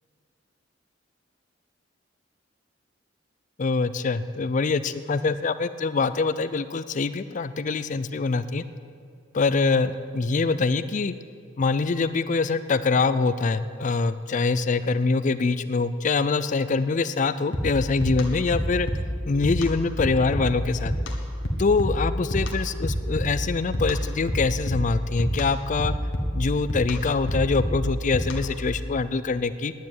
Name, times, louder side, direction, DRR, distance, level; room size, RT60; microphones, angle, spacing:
voice 1, 3.6-8.6 9.3-11.1 11.6-18.9 19.3-20.9 21.6-25.9 26.3-29.7, left 4 dB, 40° left, 14 dB, 0.4 m, -24 dB
sound 1, 17.5-28.7, equal, 85° left, 1.7 m, -29 dB
10.5 x 9.4 x 9.6 m, 2.3 s
head